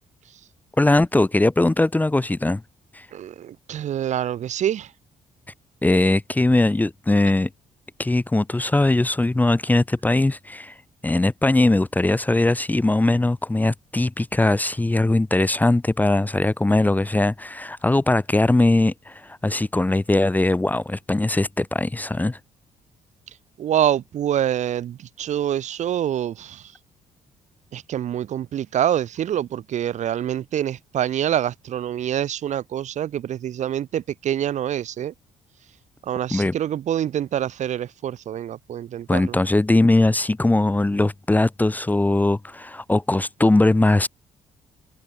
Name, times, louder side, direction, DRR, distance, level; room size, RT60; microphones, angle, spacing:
voice 1, 0.8-2.6 2.9-3.1 5.8-7.5 8.0-10.7 11.0-22.4 36.3-36.5 39.1-44.1, left 2 dB, 10° left, 0.6 m, -20 dB
voice 2, 3.1-4.9 23.6-26.7 27.7-35.1 36.0-39.4, right 10 dB, 60° right, 0.7 m, -26 dB
supercardioid pair, 70°, 14 cm